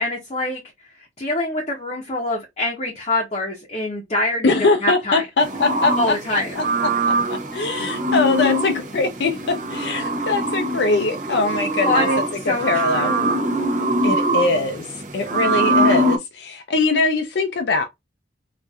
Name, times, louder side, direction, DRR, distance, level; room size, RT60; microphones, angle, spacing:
voice 1, 0.0-5.2 6.0-6.6 11.8-13.5, left 1 dB, 35° left, 0.8 m, -25 dB
voice 2, 4.4-6.1 6.6-6.9 7.5-12.1 12.5-13.1 14.0-14.9 15.1-17.8, left 3 dB, 65° left, 0.5 m, -22 dB
sound 1, 5.4-16.2, right 1 dB, 40° right, 0.6 m, -23 dB
4.1 x 2.5 x 2.3 m
head